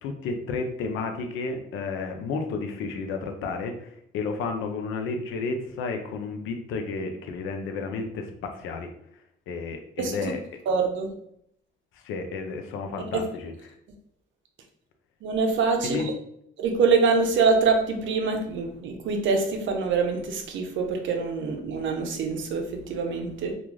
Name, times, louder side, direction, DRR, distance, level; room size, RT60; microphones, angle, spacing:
voice 1, 0.0-3.9 4.1-8.9 9.5-10.4 12.0-13.7 15.8-16.1, left 4 dB, 90° left, 5 dB, 0.5 m, -32 dB
voice 2, 10.0-10.3 10.7-11.1 13.0-13.1 15.2-16.1 16.6-23.5, right 4 dB, 75° right, 5 dB, 0.6 m, -25 dB
2.4 x 2.3 x 3.1 m, 0.72 s
cardioid pair, 90°, 20 cm